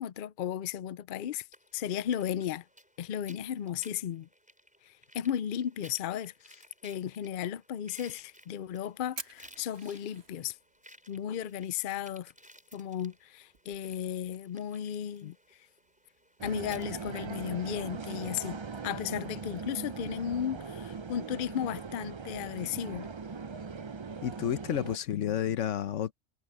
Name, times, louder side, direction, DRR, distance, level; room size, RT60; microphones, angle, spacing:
voice 1, 0.0-1.5 1.7-2.6 3.0-4.3 4.8-10.6 11.1-12.3 12.7-15.4 16.4-18.6 18.8-23.1, left 9 dB, 60° left, 0.6 m, -35 dB
sound 1, 1.5-18.3, equal, 5° right, 5.2 m, -59 dB
Fire, 8.1-19.6, right 4 dB, 60° right, 2.2 m, -55 dB
sound 2, 16.4-25.0, right 5 dB, 35° right, 0.4 m, -40 dB
voice 2, 24.2-26.1, left 10 dB, 80° left, 1.1 m, -31 dB
omnidirectional pair, 1.3 m